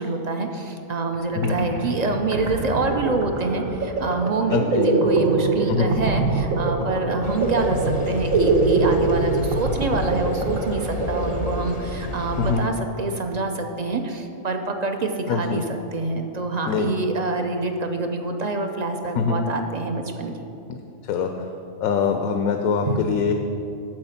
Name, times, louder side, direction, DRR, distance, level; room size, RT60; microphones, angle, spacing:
voice 1, 0.0-15.6 15.9-20.4 22.8-23.0, right 3 dB, 55° right, 5 dB, 0.4 m, -26 dB
sound 1, 1.1-1.2 1.4-12.0, right 3 dB, 80° right, 1.3 m, -24 dB
voice 2, 4.5-4.9 5.7-5.9 12.4-12.7 15.3-15.6 16.7-16.9 19.1-19.5 20.7-21.5 21.8-23.3, left 5 dB, 85° left, 5 dB, 1.1 m, -23 dB
sound 2, 7.2-12.7, left 3 dB, 40° left, 0.6 m, -32 dB
7.7 x 7.7 x 5.7 m, 2.7 s
omnidirectional pair, 1.4 m